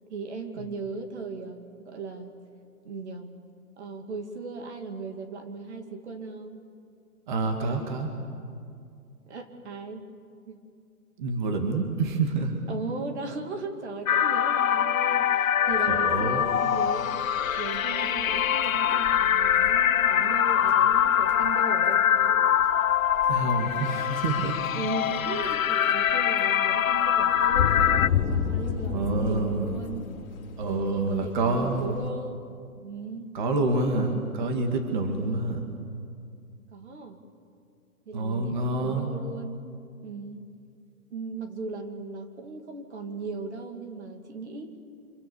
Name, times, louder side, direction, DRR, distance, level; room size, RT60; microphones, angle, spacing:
voice 1, 0.1-2.4 2.8-3.4 3.8-6.6 9.3-10.1 10.5-10.6 12.7-22.5 24.7-30.1 30.6-32.4 32.8-33.3 35.2-35.5 36.7-37.2 38.1-39.7 40.0-40.5 41.1-44.8, right 3 dB, 45° right, 5 dB, 2.5 m, -37 dB
voice 2, 7.3-8.1 11.2-12.5 15.9-16.4 23.3-24.6 28.9-29.7 30.6-31.9 33.3-35.6 38.1-39.1, right 3 dB, 30° right, 4 dB, 2.4 m, -27 dB
sound 1, 14.1-28.1, left 9 dB, 60° left, 0.8 m, -24 dB
sound 2, 15.7-32.1, left 7 dB, 35° left, 3.7 m, -34 dB
28.5 x 26.5 x 7.2 m, 2.4 s
hypercardioid pair, 165°, 46 cm